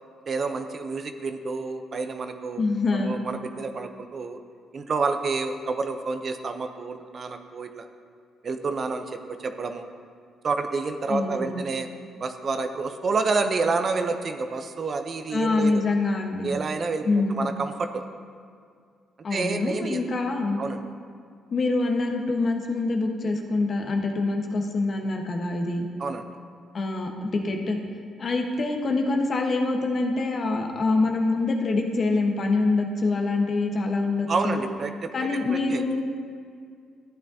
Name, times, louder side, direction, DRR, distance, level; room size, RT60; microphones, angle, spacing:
voice 1, 0.3-2.6 2.9-4.4 4.7-7.9 8.4-9.9 10.4-15.8 16.4-18.0 19.3-20.1 20.6-20.8 26.0-26.3 34.3-35.8, right 4 dB, 45° right, 7 dB, 0.6 m, -29 dB
voice 2, 2.6-3.2 11.1-11.6 15.3-16.5 17.0-17.4 19.2-20.6 21.5-25.8 26.7-27.8 28.2-34.6 35.1-36.0, left 3 dB, 45° left, 2 dB, 1.2 m, -25 dB
14.0 x 9.2 x 2.8 m, 2.2 s
cardioid pair, 90°, 0 cm